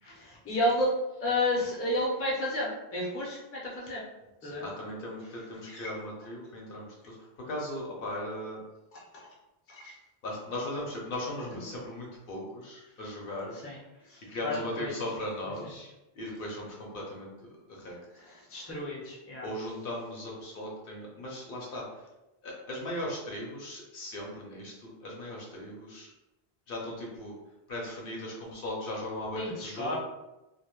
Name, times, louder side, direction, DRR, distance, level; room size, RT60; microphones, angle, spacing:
voice 1, 0.0-0.9 1.2-4.0 4.4-4.6 5.7-5.9 8.9-9.0 9.7-9.9 13.6-13.8 14.1-15.0 18.2-19.5 29.3-30.0, left 1 dB, 20° left, -5 dB, 0.4 m, -31 dB
voice 2, 4.4-8.6 10.2-13.6 14.3-17.3 17.7-18.0 19.4-21.8 22.4-26.1 26.7-27.3 27.7-30.0, left 1 dB, 65° left, -2 dB, 0.7 m, -38 dB
2.2 x 2.0 x 2.9 m, 0.98 s
omnidirectional pair, 1.1 m